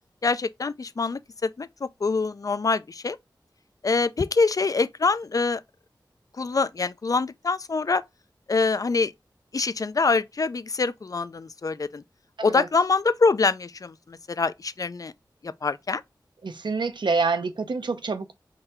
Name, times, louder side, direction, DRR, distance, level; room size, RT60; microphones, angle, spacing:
voice 1, 0.2-3.2 3.8-5.6 6.4-8.0 8.5-9.1 9.5-12.0 12.4-15.1 15.4-16.0, left 4 dB, 50° left, 0.4 m, -25 dB
voice 2, 16.4-18.3, right 4 dB, 80° right, 0.6 m, -27 dB
3.8 x 2.7 x 4.3 m
wide cardioid pair, 60°, 8 cm